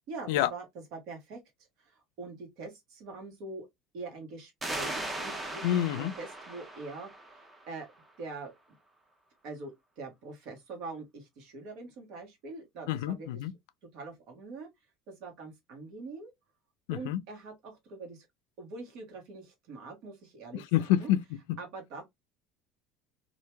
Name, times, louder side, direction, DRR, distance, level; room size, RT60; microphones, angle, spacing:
voice 1, 0.1-0.6 0.9-1.4 1.8-3.7 3.9-5.6 5.9-7.1 7.7-7.9 8.2-8.5 9.4-13.4 13.9-14.7 15.1-16.3 16.9-18.2 18.6-20.6 21.0-21.1 21.6-22.0, right 3 dB, 70° right, 1.2 m, -43 dB
sound 1, 4.6-8.0, right 1 dB, 15° right, 0.7 m, -38 dB
voice 2, 5.6-6.1 12.9-13.5 16.9-17.2 20.5-21.6, left 12 dB, 80° left, 0.3 m, -28 dB
2.9 x 2.5 x 2.2 m
supercardioid pair, 90°, 0 cm